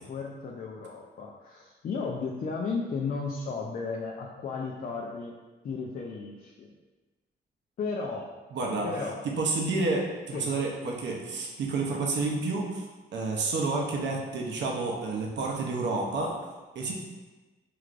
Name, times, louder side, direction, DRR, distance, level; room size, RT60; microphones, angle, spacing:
voice 1, 0.1-5.3 5.6-6.7 7.8-8.3 8.8-9.3 10.3-10.5, left 4 dB, 45° left, -1 dB, 0.4 m, -34 dB
voice 2, 8.5-8.9 9.4-12.8 13.1-16.4 16.7-16.9, right 3 dB, 70° right, -1 dB, 0.7 m, -29 dB
4.8 x 3.2 x 2.5 m, 1.2 s
wide cardioid pair, 140°, 19 cm